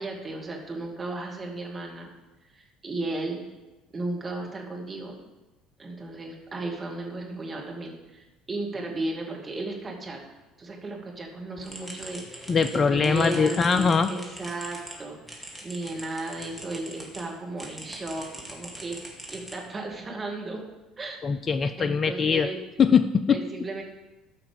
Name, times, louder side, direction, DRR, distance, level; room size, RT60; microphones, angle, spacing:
voice 1, 0.0-2.1 2.5-3.4 3.9-5.2 5.8-10.2 10.6-19.0 19.3-20.6 21.0-21.2 21.8-22.6 23.3-23.8, right 2 dB, 25° right, -1 dB, 2.5 m, -35 dB
sound 1, 11.6-17.2 17.6-19.9, right 1 dB, 5° left, 2.6 m, -42 dB
voice 2, 12.5-14.1 21.2-22.5 22.8-23.4, left 6 dB, 35° left, 10 dB, 0.4 m, -22 dB
13.5 x 5.8 x 5.3 m, 1.1 s
figure-of-eight pair, 60°, 0 cm